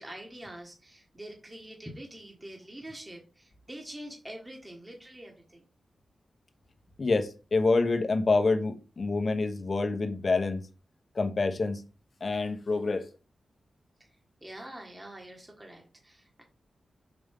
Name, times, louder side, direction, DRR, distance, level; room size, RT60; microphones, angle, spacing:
voice 1, 0.0-5.6 14.4-16.4, right 1 dB, 20° right, 1.5 m, -45 dB
voice 2, 7.0-10.6 11.1-11.8 12.2-13.1, left 3 dB, 50° left, 1.0 m, -27 dB
5.3 x 5.1 x 3.6 m
cardioid pair, 75°, 0 cm